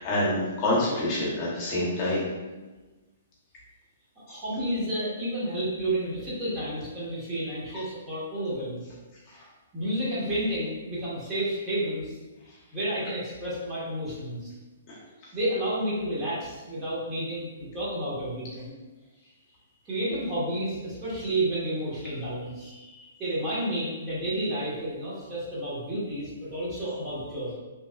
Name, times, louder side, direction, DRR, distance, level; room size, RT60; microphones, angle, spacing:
voice 1, 0.0-2.3 7.7-7.8 9.3-9.4 14.9-15.0 22.7-23.0, left 1 dB, 30° left, -6 dB, 0.9 m, -27 dB
voice 2, 4.3-8.8 9.7-12.1 12.7-14.5 15.3-18.7 19.8-22.7 23.2-27.5, right 1 dB, 20° right, -8 dB, 1.2 m, -31 dB
3.3 x 3.1 x 2.4 m, 1.2 s
hypercardioid pair, 155°, 0 cm